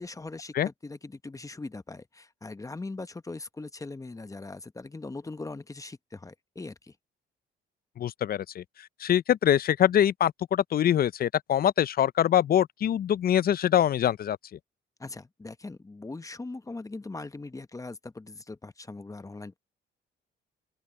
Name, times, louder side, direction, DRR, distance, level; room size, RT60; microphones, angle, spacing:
voice 1, 0.0-7.0 15.0-19.6, left 3 dB, 15° left, 0.8 m, -40 dB
voice 2, 8.0-8.6 9.0-14.4, left 10 dB, 50° left, 0.5 m, -24 dB
open air
cardioid pair, 90°, 20 cm